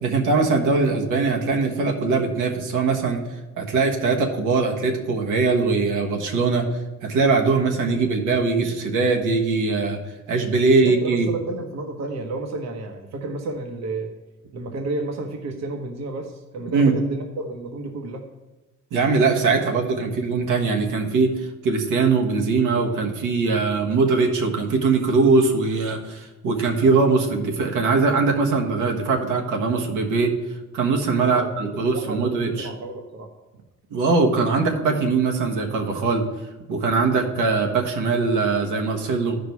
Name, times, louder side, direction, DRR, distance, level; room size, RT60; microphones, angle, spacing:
voice 1, 0.0-3.2 3.6-6.6 7.0-10.0 10.3-11.3 16.7-16.9 18.9-30.3 30.7-32.7 33.9-36.2 36.7-39.4, right 4 dB, 90° right, 1 dB, 1.4 m, -21 dB
voice 2, 10.8-14.1 14.5-18.2 31.2-33.3, right 2 dB, 60° right, 4 dB, 1.1 m, -31 dB
12.0 x 5.1 x 4.6 m, 1.1 s
cardioid pair, 90°, 30 cm